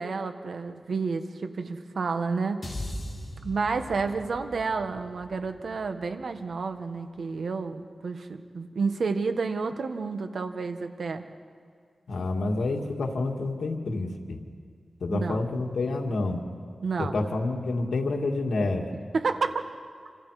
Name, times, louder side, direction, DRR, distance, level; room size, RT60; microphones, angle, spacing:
voice 1, 0.0-2.7 3.4-11.2 15.1-15.5 16.8-17.2 19.1-19.6, right 4 dB, 75° right, 7 dB, 1.5 m, -30 dB
sound 1, 2.6-7.0, left 1 dB, 30° left, 5.0 m, -40 dB
voice 2, 12.1-14.4 15.0-16.4 17.0-18.9, left 2 dB, 80° left, 1 dB, 2.4 m, -28 dB
28.0 x 26.5 x 5.1 m, 2.1 s
wide cardioid pair, 70°, 0 cm